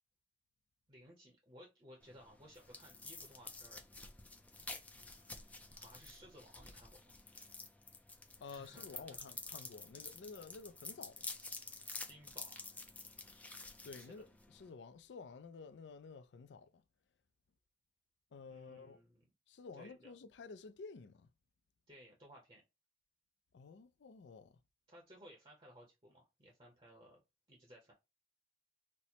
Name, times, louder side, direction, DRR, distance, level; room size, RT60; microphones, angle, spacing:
voice 1, 0.9-3.8 4.9-5.4 5.7-7.2 8.5-9.2 11.3-11.6 12.1-12.7 14.0-14.2 18.5-19.2 19.8-20.1 21.9-22.6 24.9-27.2 27.5-27.9, equal, 30° right, 0.8 m, -59 dB
sound 1, 2.0-14.7, left 3 dB, 10° left, 0.4 m, -50 dB
voice 2, 8.4-11.3 13.8-16.8 18.3-19.0 19.5-21.3 23.5-24.6, left 4 dB, 85° left, 0.4 m, -52 dB
4.3 x 2.1 x 2.8 m
head